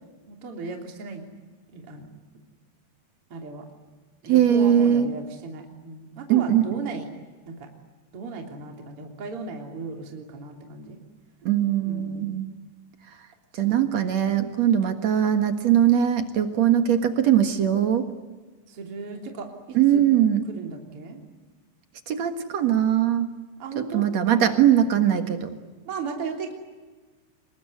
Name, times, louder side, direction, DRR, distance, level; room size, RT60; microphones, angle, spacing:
voice 1, 0.3-1.3 1.7-2.1 3.3-3.7 4.2-7.1 7.4-7.7 8.1-11.0 11.8-12.4 13.6-13.9 18.7-20.0 20.5-21.2 23.6-24.1 24.4-24.9 25.8-26.5, right 4 dB, 35° right, 2 dB, 3.8 m, -36 dB
voice 2, 4.3-5.1 6.3-6.8 11.5-12.5 13.6-18.0 19.7-20.4 22.1-23.3 23.9-25.5, right 10 dB, 55° right, 7 dB, 2.2 m, -21 dB
26.5 x 22.5 x 9.5 m, 1.3 s
omnidirectional pair, 4.9 m